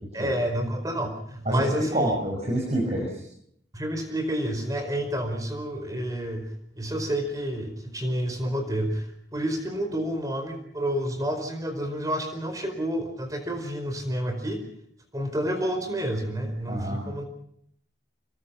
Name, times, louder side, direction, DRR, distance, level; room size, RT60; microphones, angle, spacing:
voice 1, 0.1-2.2 3.7-6.5 6.8-14.6 15.1-17.2, equal, 20° right, 6 dB, 4.7 m, -29 dB
voice 2, 1.5-3.2 16.7-17.0, right 1 dB, 35° right, 0 dB, 5.7 m, -27 dB
27.0 x 22.0 x 5.7 m, 0.68 s
head